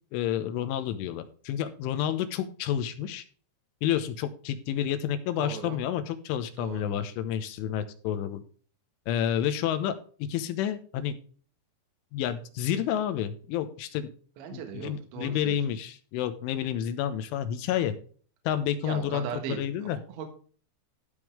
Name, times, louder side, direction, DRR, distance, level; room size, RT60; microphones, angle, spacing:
voice 1, 0.1-3.2 3.8-8.4 9.1-9.9 10.2-11.1 12.1-14.1 14.5-17.9 18.5-20.0, left 10 dB, 80° left, 10 dB, 3.4 m, -30 dB
voice 2, 5.4-5.8 6.6-7.1 14.4-15.6 18.8-20.3, right 8 dB, 75° right, 4 dB, 3.7 m, -38 dB
15.5 x 5.4 x 3.3 m, 0.43 s
omnidirectional pair, 5.6 m